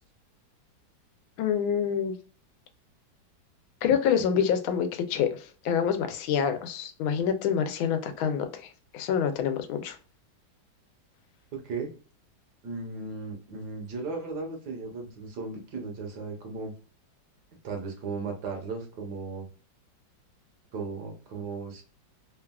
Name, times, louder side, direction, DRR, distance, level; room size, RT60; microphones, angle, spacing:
voice 1, 1.4-2.2 3.8-10.0, left 8 dB, 90° left, 8 dB, 1.4 m, -27 dB
voice 2, 11.5-11.9 12.6-16.7 17.6-19.4 20.7-21.8, right 4 dB, 65° right, 2 dB, 1.2 m, -36 dB
3.4 x 2.3 x 2.2 m, 0.37 s
omnidirectional pair, 2.2 m